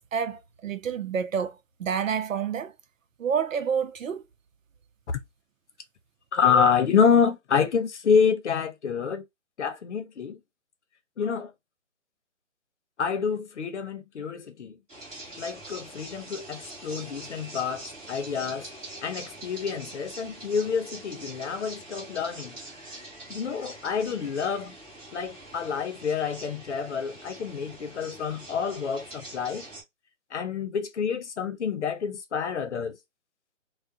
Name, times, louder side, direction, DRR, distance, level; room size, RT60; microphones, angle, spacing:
voice 1, 0.0-2.7 3.2-4.2, right 7 dB, 75° right, 0.7 m, -29 dB
voice 2, 6.3-9.2 9.6-10.4 11.2-11.5 13.0-14.8 15.4-18.6 19.0-22.6 23.3-24.7 25.1-29.7 30.3-33.0, left 6 dB, 60° left, 0.8 m, -27 dB
sound 1, 14.9-29.8, right 2 dB, 15° right, 1.3 m, -44 dB
3.5 x 2.4 x 2.6 m
hypercardioid pair, 155°, 39 cm